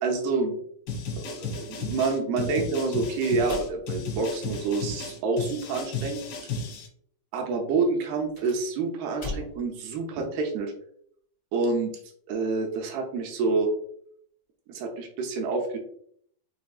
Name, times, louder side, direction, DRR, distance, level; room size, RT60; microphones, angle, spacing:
voice 1, 0.0-0.6 1.2-6.2 7.3-10.7 11.5-11.9 12.3-13.7 14.7-15.8, right 3 dB, 80° right, 1 dB, 2.3 m, -27 dB
sound 1, 0.9-6.9, left 3 dB, 70° left, 2.9 m, -34 dB
sound 2, 3.4-4.8 8.1-9.8, left 2 dB, 90° left, 1.0 m, -40 dB
7.0 x 2.5 x 2.3 m, 0.64 s
omnidirectional pair, 5.2 m